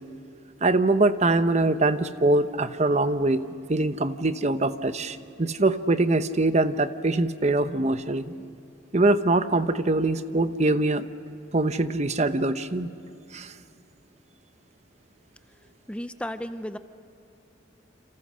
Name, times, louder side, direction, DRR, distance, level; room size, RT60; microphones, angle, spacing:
voice 1, 0.6-8.3 8.9-11.1 11.5-12.9 13.3-13.5, right 2 dB, 40° right, 11 dB, 0.9 m, -23 dB
voice 2, 15.9-16.8, left 1 dB, 5° left, 10 dB, 0.6 m, -33 dB
29.5 x 27.5 x 6.4 m, 2.7 s
head